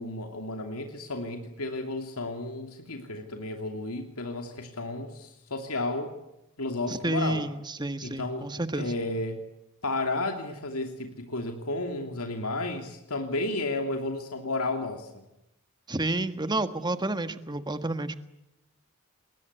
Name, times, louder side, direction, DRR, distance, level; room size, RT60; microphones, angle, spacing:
voice 1, 0.0-6.1 6.6-7.4 8.0-8.5 8.7-9.4 9.8-15.2, left 2 dB, 85° left, 4 dB, 2.7 m, -32 dB
voice 2, 6.9-8.9 15.9-18.1, right 2 dB, 20° right, 10 dB, 1.5 m, -30 dB
28.0 x 21.5 x 8.2 m, 0.88 s
head